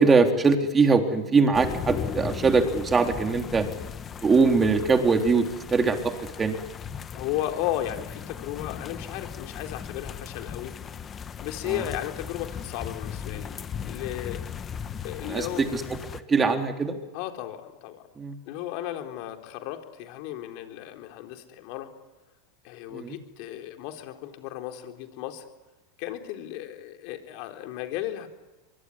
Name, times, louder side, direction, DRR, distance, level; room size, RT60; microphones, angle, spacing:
voice 1, 0.0-3.6 4.2-5.5 5.7-6.1 6.4-6.6 11.7-11.8 15.2-15.8 16.3-17.0 18.2-18.4 22.9-23.2, right 4 dB, 20° right, 5 dB, 3.7 m, -22 dB
sound 1, 1.5-16.2, left 7 dB, 30° left, 1.5 m, -37 dB
voice 2, 7.1-10.7 11.4-14.4 15.0-15.6 17.1-18.1 18.5-21.9 22.6-25.4 26.0-28.3, left 13 dB, 60° left, 5 dB, 3.8 m, -34 dB
24.0 x 23.5 x 9.9 m, 1.1 s
supercardioid pair, 115°, 0 cm